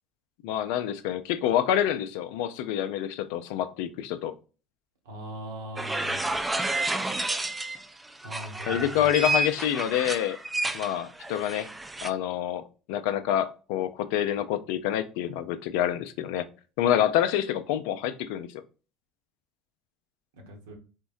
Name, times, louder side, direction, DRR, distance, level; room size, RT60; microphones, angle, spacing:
voice 1, 0.4-4.3 8.7-10.4 10.7-11.7 12.0-16.5 16.8-18.5, left 11 dB, 70° left, 0.3 m, -27 dB
voice 2, 5.1-6.4 8.2-9.1 20.5-20.8, equal, 80° right, 0.9 m, -40 dB
sound 1, 5.8-7.9 8.2-12.1, right 2 dB, 15° right, 0.4 m, -30 dB
3.7 x 2.1 x 2.5 m
hypercardioid pair, 70°, 0 cm